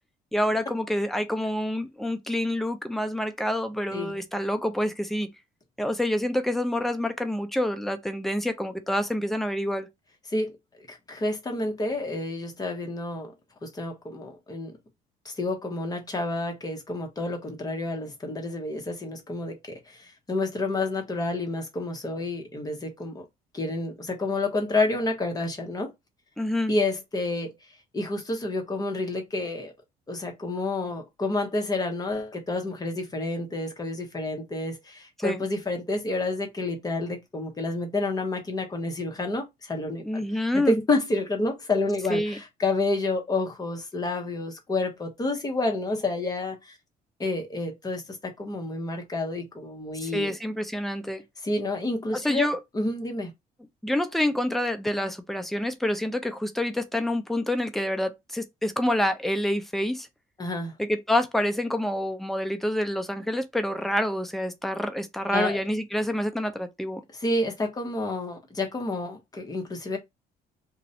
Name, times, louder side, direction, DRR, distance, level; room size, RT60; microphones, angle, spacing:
voice 1, 0.3-5.3 5.8-9.9 26.4-26.7 35.2-35.4 40.0-40.7 42.1-42.4 50.0-51.2 52.1-52.6 53.8-60.1 60.8-67.0, left 1 dB, ahead, 0.4 m, -27 dB
voice 2, 10.9-13.3 13.6-14.7 15.2-23.2 23.5-25.9 26.7-27.6 27.9-29.7 30.1-40.2 40.5-46.7 47.2-50.3 51.4-53.3 60.4-60.7 65.3-65.6 67.1-70.0, left 2 dB, 20° left, 0.8 m, -29 dB
2.3 x 2.0 x 2.7 m
cardioid pair, 110°, 17 cm